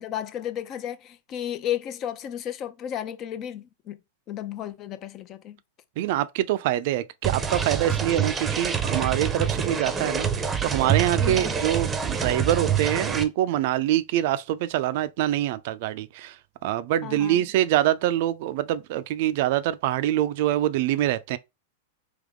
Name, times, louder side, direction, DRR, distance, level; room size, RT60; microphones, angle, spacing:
voice 1, 0.0-4.0 4.3-5.6 11.2-11.6 17.0-17.4, left 10 dB, 40° left, 0.6 m, -33 dB
voice 2, 6.0-10.3 10.6-16.3 16.6-21.4, right 13 dB, 60° right, 0.4 m, -25 dB
sound 1, 7.2-13.2, right 7 dB, 20° right, 0.7 m, -26 dB
3.6 x 3.0 x 3.6 m
hypercardioid pair, 110°, 0 cm